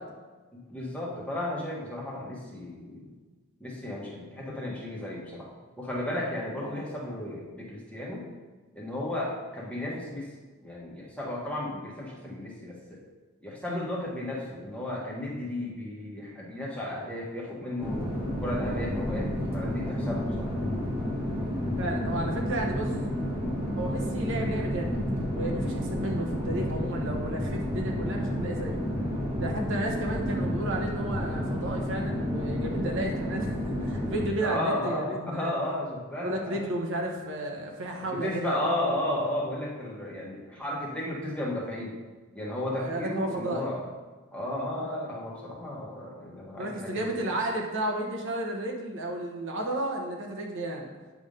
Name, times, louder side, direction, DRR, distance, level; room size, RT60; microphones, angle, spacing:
voice 1, 0.5-3.1 3.6-5.5 5.8-8.3 8.7-10.3 10.6-13.0 13.4-18.1 18.4-20.6 34.4-36.6 37.8-42.0 42.3-43.9 44.3-47.1, left 1 dB, 5° left, -4 dB, 1.4 m, -34 dB
sound 1, 17.8-34.3, equal, 10° right, 1.5 m, -30 dB
voice 2, 21.8-22.9 23.8-25.0 25.3-28.8 29.4-35.5 36.2-38.7 42.8-43.7 46.6-50.9, right 1 dB, 65° right, 1 dB, 1.0 m, -33 dB
8.5 x 3.5 x 5.3 m, 1.3 s
head